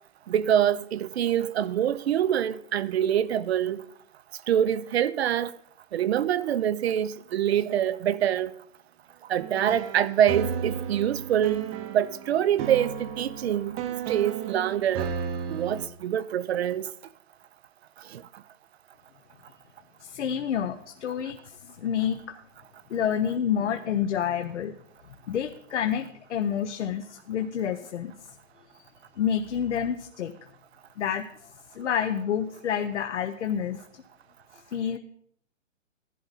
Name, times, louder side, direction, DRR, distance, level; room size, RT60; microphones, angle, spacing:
voice 1, 0.3-3.8 4.5-5.5 5.9-8.5 9.3-13.7 14.1-15.1 15.5-16.9 18.1-18.2, right 10 dB, 55° right, 0.8 m, -25 dB
sound 1, 9.4-15.9, right 7 dB, 25° right, 1.0 m, -34 dB
voice 2, 20.0-22.4 22.9-24.7 25.3-28.1 29.2-30.3 31.0-34.0 34.7-35.0, left 8 dB, 60° left, 1.1 m, -29 dB
14.5 x 11.5 x 4.2 m
hypercardioid pair, 145°, 38 cm